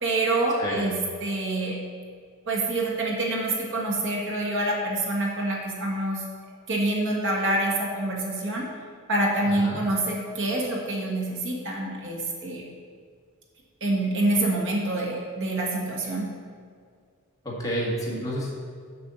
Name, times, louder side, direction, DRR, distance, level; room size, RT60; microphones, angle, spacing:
voice 1, 0.0-1.8 2.5-6.2 6.7-8.7 9.1-12.6 13.8-16.3, right 2 dB, 60° right, -1 dB, 1.6 m, -26 dB
voice 2, 0.6-0.9 9.4-9.8 17.4-18.5, equal, 15° left, -5 dB, 1.8 m, -30 dB
7.0 x 5.5 x 7.0 m, 2.1 s
head